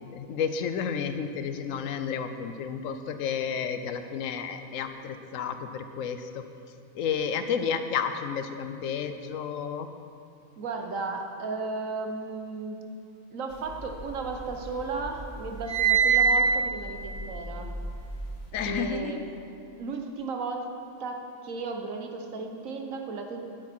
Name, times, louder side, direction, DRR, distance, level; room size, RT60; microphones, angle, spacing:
voice 1, 0.0-6.4 6.9-9.9 18.5-19.2, left 7 dB, 75° left, 9 dB, 1.0 m, -31 dB
voice 2, 10.6-12.8 13.3-17.7 18.7-19.2 19.8-20.7 21.0-23.4, right 4 dB, 70° right, 4 dB, 1.3 m, -34 dB
sound 1, 13.6-14.7 15.0-18.4, right 6 dB, 40° left, 1.8 m, -25 dB
9.8 x 9.5 x 4.4 m, 2.6 s
omnidirectional pair, 1.4 m